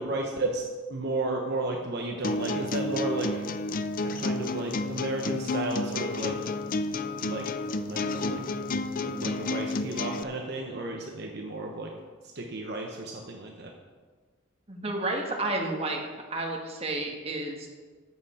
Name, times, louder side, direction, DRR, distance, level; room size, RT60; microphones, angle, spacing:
voice 1, 0.0-3.5 4.0-6.4 7.2-7.5 7.9-8.4 9.0-11.9 12.2-13.7, right 2 dB, 55° right, 1 dB, 1.0 m, -33 dB
sound 1, 2.2-10.2, left 2 dB, 45° left, 0.5 m, -31 dB
voice 2, 14.7-16.0 16.3-17.7, right 2 dB, 30° right, 1 dB, 1.6 m, -31 dB
13.5 x 7.7 x 4.4 m, 1.5 s
head